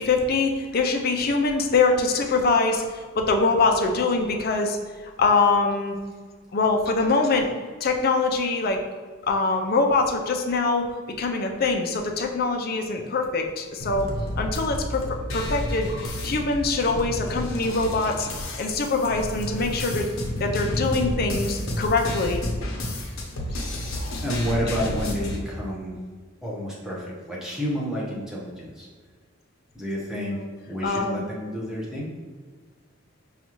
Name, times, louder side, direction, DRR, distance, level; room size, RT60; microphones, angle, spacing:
voice 1, 0.0-4.8 5.2-6.0 6.5-7.5 7.8-8.8 9.3-14.1 14.4-15.0 15.3-18.3 18.6-20.1 20.4-22.4 30.3-30.5 30.8-31.2, left 3 dB, 45° left, 3 dB, 0.4 m, -23 dB
sound 1, 13.8-25.4, left 1 dB, 85° left, 0.7 m, -30 dB
voice 2, 24.2-26.0 26.4-28.9 29.7-30.4 30.7-32.1, equal, 5° right, -5 dB, 0.8 m, -30 dB
5.3 x 2.4 x 3.0 m, 1.5 s
head